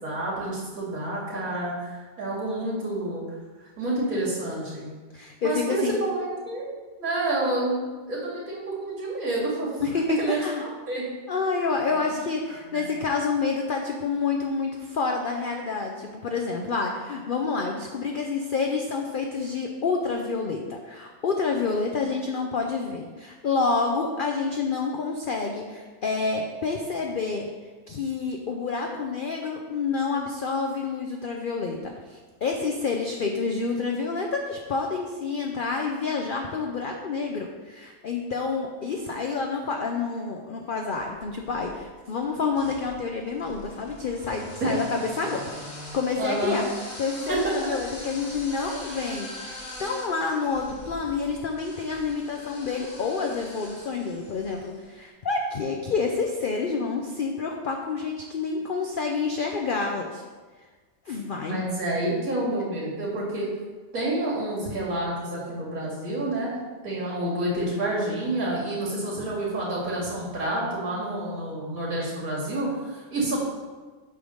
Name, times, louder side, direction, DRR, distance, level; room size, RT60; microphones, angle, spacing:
voice 1, 0.0-3.2 3.8-4.9 5.4-6.7 7.0-9.7 10.2-11.0 12.1-12.2 12.7-12.9 44.6-44.7 45.2-45.5 46.2-46.6 47.3-47.4 61.5-63.5 63.9-66.5 66.8-73.4, right 2 dB, 80° right, -6 dB, 2.9 m, -29 dB
voice 2, 5.1-5.9 9.8-10.6 11.3-27.5 27.9-45.5 45.9-46.7 47.0-60.2 61.1-61.6, left 4 dB, 55° left, 2 dB, 0.6 m, -28 dB
sound 1, 41.1-41.8 42.5-54.8, equal, 80° left, 2.3 m, -42 dB
8.2 x 3.6 x 6.2 m, 1.4 s
omnidirectional pair, 1.5 m